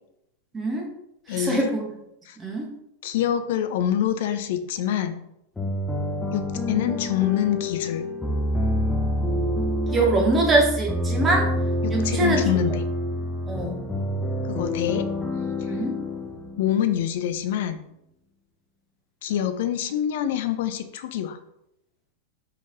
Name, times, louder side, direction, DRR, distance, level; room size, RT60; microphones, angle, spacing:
voice 1, 0.5-0.8 1.3-1.8 2.4-2.7 9.9-11.5 11.9-12.4 13.5-13.8 15.7-16.0, right 2 dB, 15° right, 0 dB, 1.0 m, -23 dB
voice 2, 1.3-1.7 2.3-2.4 3.0-5.2 6.3-8.1 11.8-12.8 14.5-15.1 16.6-17.8 19.2-21.4, left 10 dB, 55° left, 9 dB, 0.4 m, -25 dB
sound 1, 5.6-17.3, left 1 dB, 10° left, 0.6 m, -27 dB
5.4 x 3.2 x 2.6 m, 0.80 s
figure-of-eight pair, 90°, 0 cm